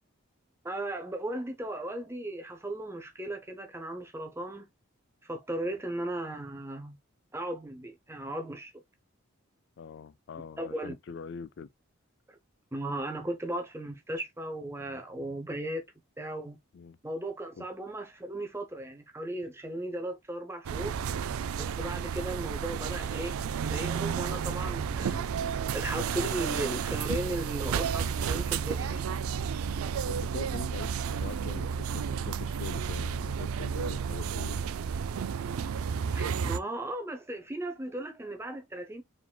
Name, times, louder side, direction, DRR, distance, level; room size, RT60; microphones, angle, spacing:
voice 1, 0.6-4.7 5.2-7.0 7.3-8.7 10.6-10.9 12.3-12.4 12.7-15.8 16.2-16.6 17.0-21.0 21.6-25.3 25.7-29.1 36.1-39.0, right 1 dB, 10° right, 0.6 m, -36 dB
voice 2, 9.8-11.7 16.7-17.0 17.6-17.7 30.1-34.6, left 5 dB, 55° left, 0.3 m, -43 dB
sound 1, 20.6-36.6, right 7 dB, 85° right, 0.4 m, -32 dB
4.7 x 3.7 x 2.2 m
head